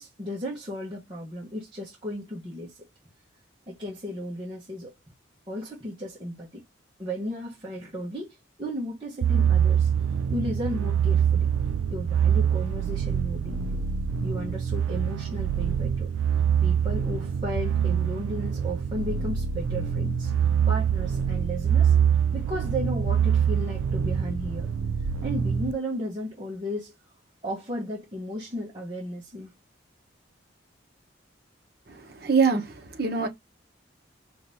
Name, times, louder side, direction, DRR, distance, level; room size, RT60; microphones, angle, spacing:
voice 1, 0.0-2.8 3.7-4.9 5.5-6.6 7.0-9.9 10.3-11.5 11.9-13.8 14.2-16.1 16.6-20.3 20.7-21.9 22.3-24.7 25.2-26.9 27.4-29.5, equal, 25° right, 1.0 m, -34 dB
sound 1, 9.2-25.7, right 8 dB, 85° right, 0.3 m, -25 dB
voice 2, 31.9-33.3, right 5 dB, 50° right, 1.0 m, -24 dB
5.2 x 2.6 x 2.7 m
head